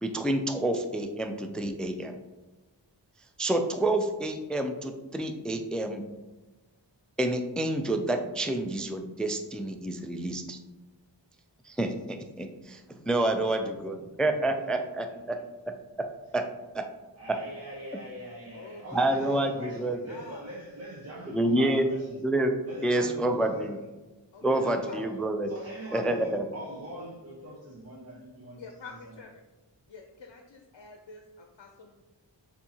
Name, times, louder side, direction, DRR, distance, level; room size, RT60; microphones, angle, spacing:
voice 1, 0.0-2.2 3.4-6.0 7.2-10.6 11.6-12.8 13.1-15.4 16.3-16.4 16.7-16.9 17.3-17.4 18.9-20.0 21.3-21.9 22.2-22.5 22.8-23.8 24.4-25.5 25.9-26.4, right 1 dB, ahead, 6 dB, 0.3 m, -28 dB
voice 2, 13.3-15.4 16.2-16.3 17.1-22.2 22.6-23.9 24.4-29.2, right 1 dB, 35° right, -6 dB, 1.0 m, -43 dB
voice 3, 18.5-20.5 24.3-24.4 24.9-25.0 28.5-29.3 29.9-31.9, left 4 dB, 70° left, 3 dB, 0.5 m, -48 dB
6.8 x 2.8 x 2.8 m, 1.1 s
wide cardioid pair, 40°, 44 cm